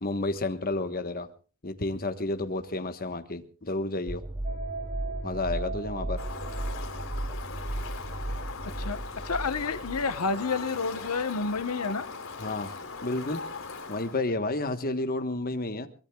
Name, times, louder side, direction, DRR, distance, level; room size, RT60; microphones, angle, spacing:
voice 1, 0.0-1.3 1.6-4.2 5.2-6.2 12.4-13.4 13.9-15.9, left 2 dB, 40° left, 8 dB, 1.2 m, -31 dB
sound 1, 4.1-11.3, right 1 dB, 20° right, 0.8 m, -36 dB
sound 2, 4.4-7.2, right 4 dB, 45° right, 4.2 m, -40 dB
Fowl, 6.2-14.2, left 4 dB, 65° left, 3.5 m, -40 dB
voice 2, 9.2-12.0, left 4 dB, 80° left, 11 dB, 1.0 m, -29 dB
23.0 x 21.0 x 2.3 m, 0.35 s
head